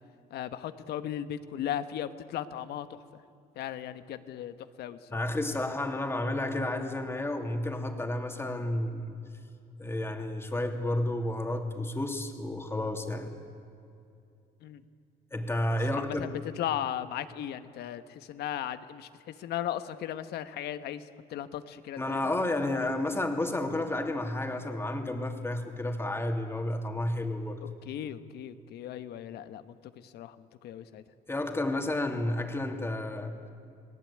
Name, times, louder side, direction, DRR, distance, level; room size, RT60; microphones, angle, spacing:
voice 1, 0.3-2.9 3.6-5.2 14.6-14.8 15.9-19.1 19.4-21.0 21.3-22.2 27.8-29.6 30.1-30.3 30.6-31.0, left 11 dB, 75° left, 11 dB, 1.4 m, -36 dB
voice 2, 5.1-9.2 9.8-13.4 15.3-16.4 22.0-27.6 31.3-33.3, left 1 dB, 15° left, 4 dB, 2.8 m, -31 dB
30.0 x 19.5 x 8.8 m, 2.5 s
cardioid pair, 110°, 17 cm